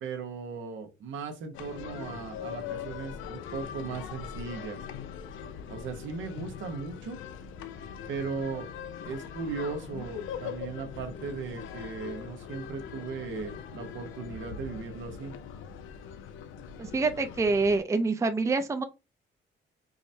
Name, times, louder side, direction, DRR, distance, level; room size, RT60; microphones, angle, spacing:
voice 1, 0.0-4.8 5.7-7.2 8.1-8.7 9.0-15.3, right 5 dB, 75° right, 0.9 m, -37 dB
sound 1, 1.5-17.8, left 8 dB, 80° left, 0.5 m, -41 dB
voice 2, 16.8-18.8, right 3 dB, 15° right, 0.4 m, -26 dB
4.7 x 2.1 x 2.6 m
cardioid pair, 90°, 20 cm